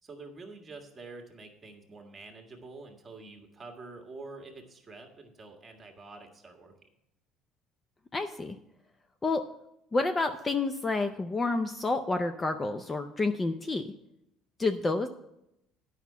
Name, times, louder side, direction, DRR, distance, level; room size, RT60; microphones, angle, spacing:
voice 1, 0.0-6.7, right 3 dB, 20° right, 3 dB, 1.7 m, -47 dB
voice 2, 8.1-8.6 9.2-9.4 9.9-13.8 14.6-15.1, left 3 dB, 20° left, 8 dB, 0.5 m, -29 dB
9.5 x 5.7 x 7.2 m, 0.84 s
cardioid pair, 125°, 0 cm